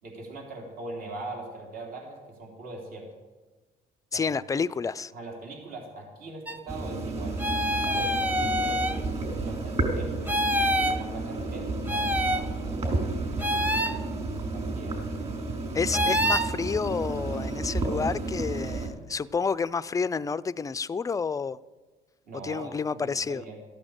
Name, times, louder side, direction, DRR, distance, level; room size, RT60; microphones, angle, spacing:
voice 1, 0.0-3.0 4.1-4.2 5.1-7.4 7.8-10.4 10.7-12.8 13.4-14.0 14.5-15.0 16.0-16.1 22.2-23.6, right 2 dB, 60° right, 0 dB, 3.4 m, -41 dB
voice 2, 4.1-5.1 15.7-21.6 22.4-23.4, left 5 dB, 20° left, 15 dB, 0.4 m, -29 dB
sound 1, 6.5-6.6 7.4-9.0 10.3-11.0 11.9-12.5 13.4-14.0 15.9-16.5, equal, 10° right, 0.9 m, -26 dB
sound 2, 6.7-18.9, right 2 dB, 35° right, 6.1 m, -31 dB
15.0 x 8.8 x 8.0 m, 1.3 s
cardioid pair, 110°, 17 cm